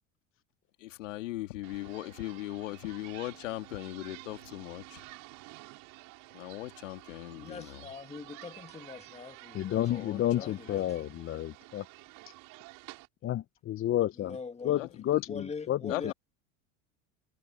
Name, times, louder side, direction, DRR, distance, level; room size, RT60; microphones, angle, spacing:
voice 1, 0.8-5.0 6.3-7.9 9.9-11.0 14.8-14.9 15.1-15.2 15.9-16.1, left 17 dB, 80° left, 2.4 m, -39 dB
sound 1, 1.6-13.1, right 23 dB, 60° right, 4.9 m, -51 dB
voice 2, 7.3-10.0 10.3-10.8 14.3-14.8 15.3-16.1, left 5 dB, 15° left, 1.7 m, -42 dB
voice 3, 9.5-11.8 12.3-12.4 13.2-14.4 14.6-15.9, left 13 dB, 35° left, 0.7 m, -30 dB
hypercardioid pair, 90°, 37 cm